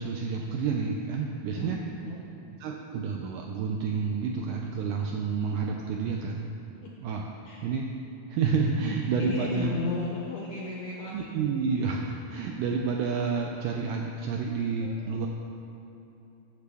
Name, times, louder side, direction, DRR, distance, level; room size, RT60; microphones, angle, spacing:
voice 1, 0.0-1.8 2.6-6.5 7.0-7.3 7.6-7.9 8.3-9.7 11.1-15.3, right 5 dB, 85° right, 1 dB, 1.8 m, -29 dB
voice 2, 9.0-11.3 14.8-15.3, left 3 dB, 80° left, -3 dB, 1.6 m, -35 dB
11.5 x 7.1 x 3.5 m, 2.9 s
omnidirectional pair, 4.2 m